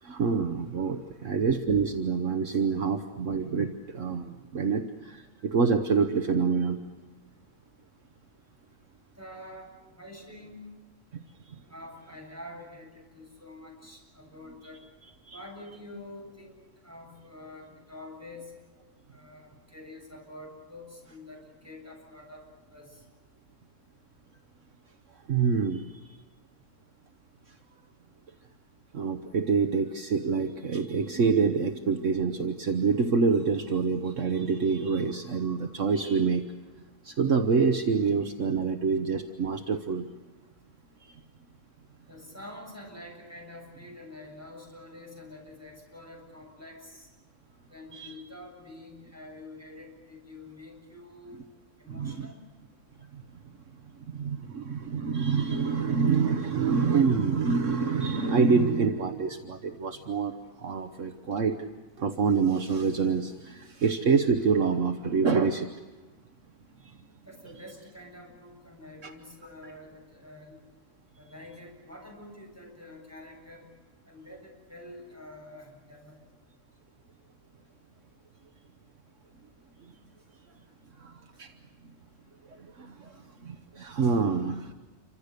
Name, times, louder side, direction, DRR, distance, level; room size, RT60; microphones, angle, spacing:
voice 1, 0.0-6.8 11.1-11.6 15.3-15.4 25.3-25.9 28.9-36.4 37.0-40.1 41.0-41.1 47.9-48.1 51.9-52.3 53.1-53.2 54.0-61.6 62.0-65.7 66.8-66.9 69.0-69.1 69.6-69.7 81.0-81.5 82.5-84.7, right 5 dB, 65° right, 6 dB, 1.4 m, -26 dB
voice 2, 9.2-10.6 11.7-14.8 15.3-16.6 16.8-18.5 19.1-22.4 22.7-23.0 42.1-47.1 47.7-51.4 51.8-52.4 67.3-70.6 71.2-73.7 74.0-76.2, left 1 dB, 10° right, -1 dB, 7.6 m, -47 dB
29.0 x 25.5 x 6.7 m, 1.3 s
omnidirectional pair, 1.4 m